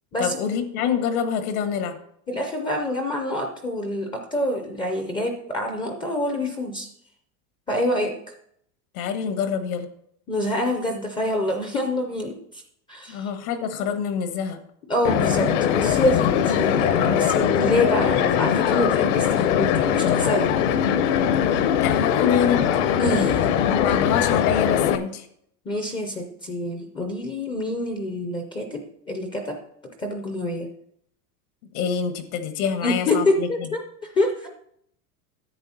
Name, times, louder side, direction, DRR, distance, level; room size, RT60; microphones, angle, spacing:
voice 1, 0.2-2.0 8.9-9.9 13.1-14.6 21.8-22.7 23.7-25.3 31.7-33.7, left 7 dB, 75° left, 8 dB, 1.6 m, -26 dB
voice 2, 2.3-6.9 7.7-8.1 10.3-12.6 12.9-13.3 14.9-20.5 23.0-23.5 25.7-29.6 30.0-30.7 32.8-33.8 34.1-34.5, left 1 dB, 10° left, 4 dB, 0.4 m, -26 dB
sound 1, 15.0-25.0, left 9 dB, 55° left, 0.8 m, -21 dB
10.5 x 7.8 x 4.2 m, 0.70 s
supercardioid pair, 165°, 44 cm